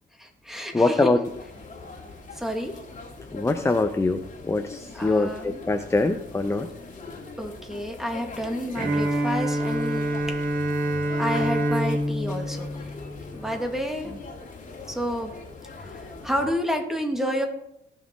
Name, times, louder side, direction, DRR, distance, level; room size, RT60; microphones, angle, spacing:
voice 1, 0.2-1.2 2.3-2.7 4.9-5.6 7.4-10.4 11.2-12.8 13.3-14.1 14.9-15.3 15.8-17.5, equal, ahead, 3 dB, 2.5 m, -30 dB
voice 2, 0.7-1.2 3.3-6.7 11.0-11.1 14.1-14.2, left 2 dB, 15° left, 7 dB, 0.8 m, -24 dB
sound 1, 1.2-16.5, left 3 dB, 40° left, 2.8 m, -42 dB
Bowed string instrument, 8.8-13.6, right 1 dB, 45° right, 2.4 m, -27 dB
18.0 x 6.9 x 4.7 m, 0.78 s
cardioid pair, 90°, 20 cm